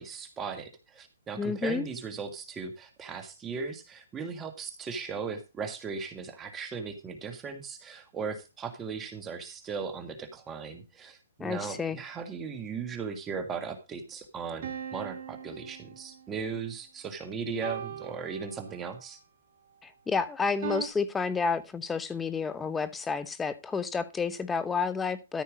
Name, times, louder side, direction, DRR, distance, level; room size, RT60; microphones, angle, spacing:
voice 1, 0.0-19.2, right 5 dB, 15° right, 1.8 m, -37 dB
voice 2, 1.4-1.9 11.4-12.0 19.8-25.4, left 5 dB, 10° left, 0.9 m, -30 dB
sound 1, 14.6-16.4 17.6-19.1 20.6-20.9, right 8 dB, 50° right, 2.2 m, -39 dB
13.5 x 5.4 x 5.2 m
hypercardioid pair, 145°, 0 cm